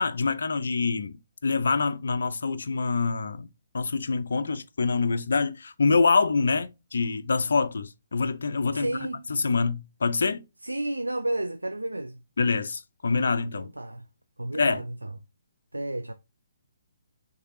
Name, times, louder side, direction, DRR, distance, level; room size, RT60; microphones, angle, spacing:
voice 1, 0.0-3.5 3.7-8.9 9.3-10.4 12.4-13.7 14.6-14.8, left 4 dB, 60° left, 0.4 m, -25 dB
voice 2, 8.7-9.2 10.6-12.2 13.6-14.0 14.4-15.1 15.7-16.1, right 1 dB, 80° right, 0.4 m, -31 dB
6.4 x 2.7 x 2.7 m
figure-of-eight pair, 130°, 0 cm